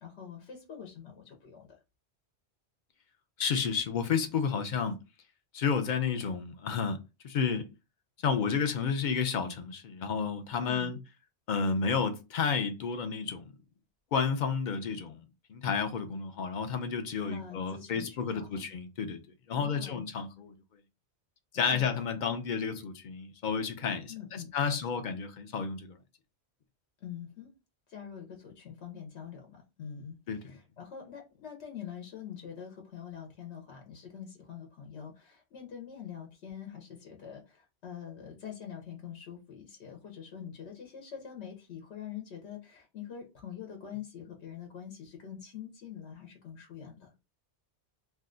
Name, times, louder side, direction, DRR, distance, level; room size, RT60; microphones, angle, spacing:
voice 1, 0.0-1.8 10.6-11.0 17.2-18.6 19.5-20.1 21.5-21.8 24.1-24.8 27.0-27.5 27.9-47.1, left 8 dB, 80° left, 1.0 m, -45 dB
voice 2, 3.4-5.0 5.5-7.0 7.2-7.7 8.2-11.0 11.5-13.5 14.1-15.2 15.5-19.2 19.5-20.5 21.5-26.0 30.3-30.4, left 6 dB, 55° left, 0.6 m, -31 dB
2.7 x 2.2 x 3.7 m
omnidirectional pair, 1.1 m